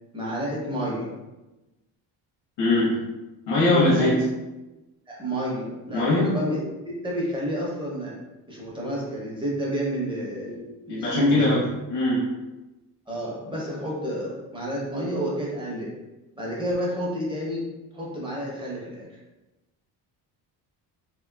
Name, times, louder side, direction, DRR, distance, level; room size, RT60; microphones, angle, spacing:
voice 1, 0.1-1.2 3.7-4.2 5.1-8.1 8.5-10.5 10.9-11.8 13.1-15.9 16.4-17.7 17.9-19.1, equal, 15° right, -5 dB, 0.7 m, -29 dB
voice 2, 2.6-3.0 3.5-4.2 5.9-6.4 10.5-10.6 10.9-11.6 11.9-12.3, left 1 dB, 90° left, -6 dB, 1.0 m, -21 dB
3.0 x 2.9 x 2.3 m, 1.0 s
cardioid pair, 155°, 39 cm